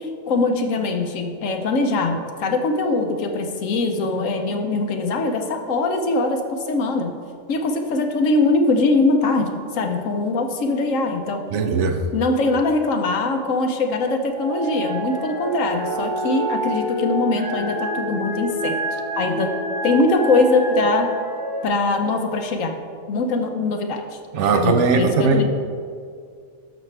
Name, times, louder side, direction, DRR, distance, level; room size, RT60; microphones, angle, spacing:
voice 1, 0.0-7.1 7.5-11.4 12.1-19.5 19.8-21.1 21.6-22.8 23.1-24.0 24.5-25.4, left 3 dB, 90° left, 4 dB, 1.2 m, -22 dB
voice 2, 11.5-12.0 24.3-25.4, right 4 dB, 70° right, 7 dB, 1.0 m, -19 dB
sound 1, 14.3-21.6, right 1 dB, 30° right, 0.4 m, -27 dB
12.5 x 6.1 x 3.3 m, 2.2 s
omnidirectional pair, 1.3 m